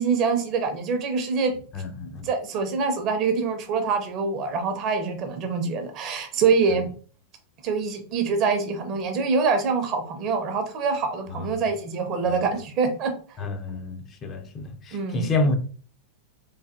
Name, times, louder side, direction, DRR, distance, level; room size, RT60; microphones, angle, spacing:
voice 1, 0.0-1.5 2.2-6.9 7.6-13.1 14.9-15.3, right 5 dB, 35° right, 0.6 m, -25 dB
voice 2, 1.7-2.3 6.7-6.8 11.4-11.6 12.3-12.4 13.4-15.6, left 2 dB, 30° left, 0.5 m, -29 dB
3.3 x 2.5 x 2.5 m
figure-of-eight pair, 90°, 0 cm